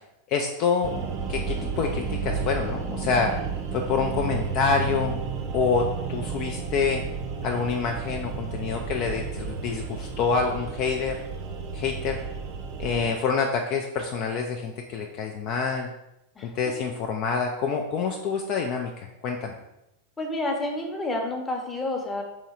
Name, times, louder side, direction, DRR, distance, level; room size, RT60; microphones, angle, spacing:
voice 1, 0.3-0.9 1.3-3.3 3.7-5.2 5.5-7.0 7.4-11.2 11.7-12.2 12.8-15.9 16.4-18.9 19.2-19.5, left 5 dB, 40° left, 2 dB, 0.4 m, -27 dB
sound 1, 0.8-13.1, right 5 dB, 45° right, 0.6 m, -32 dB
voice 2, 12.8-13.2 16.4-16.5 20.2-22.2, left 2 dB, 15° left, 1 dB, 0.8 m, -30 dB
3.7 x 3.1 x 4.3 m, 0.89 s
figure-of-eight pair, 90°, 0 cm